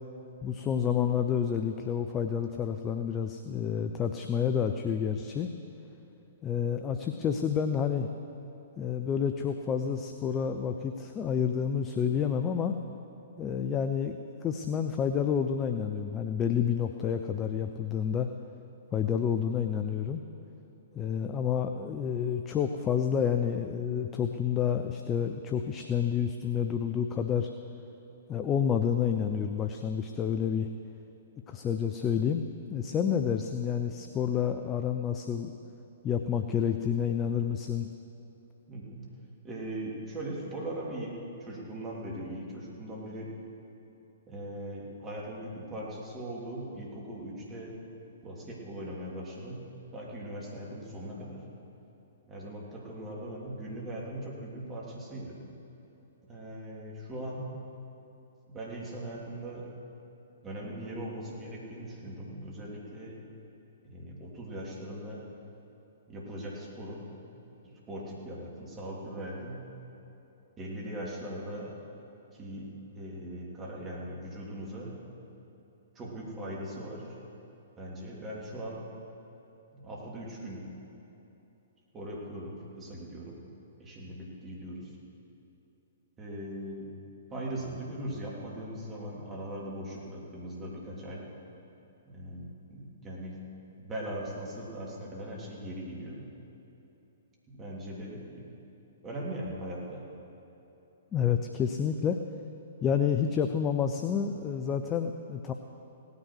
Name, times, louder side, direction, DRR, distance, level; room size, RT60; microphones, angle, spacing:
voice 1, 0.4-5.5 6.4-8.1 8.8-12.8 13.4-18.3 18.9-20.2 20.9-27.5 28.3-30.7 31.5-32.4 32.7-35.5 36.0-37.9 101.1-102.2 102.8-105.5, left 8 dB, 20° left, 6 dB, 0.6 m, -29 dB
voice 2, 38.7-39.0 39.4-43.3 44.3-47.8 48.2-49.6 49.9-51.4 52.3-55.4 56.3-57.6 58.5-59.7 60.4-63.2 63.8-65.3 66.1-67.1 67.6-69.6 70.6-71.8 72.3-74.9 75.9-77.2 77.8-78.9 79.7-80.7 81.9-83.4 83.8-84.9 86.2-87.0 87.3-91.3 92.0-93.4 93.8-96.2 97.5-98.6 99.0-100.0, right 1 dB, 20° right, -4 dB, 3.3 m, -40 dB
17.5 x 9.7 x 6.3 m, 3.0 s
figure-of-eight pair, 115°, 0 cm